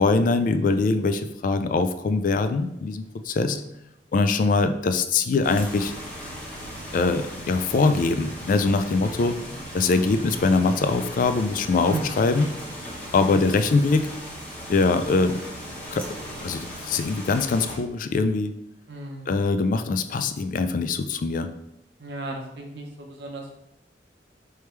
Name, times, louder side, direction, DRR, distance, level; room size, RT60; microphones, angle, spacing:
voice 1, 0.0-3.6 4.1-5.9 6.9-9.4 9.7-12.5 13.1-14.1 14.7-15.4 15.9-16.1 16.4-18.5 19.3-21.5, left 3 dB, 50° left, 9 dB, 0.3 m, -22 dB
voice 2, 3.4-3.7 9.3-9.6 11.9-12.0 13.2-13.6 18.9-19.3 22.0-23.6, right 2 dB, 70° right, 2 dB, 0.8 m, -36 dB
sound 1, 5.4-17.8, equal, 5° left, 0.9 m, -38 dB
3.4 x 3.2 x 4.4 m, 0.82 s
head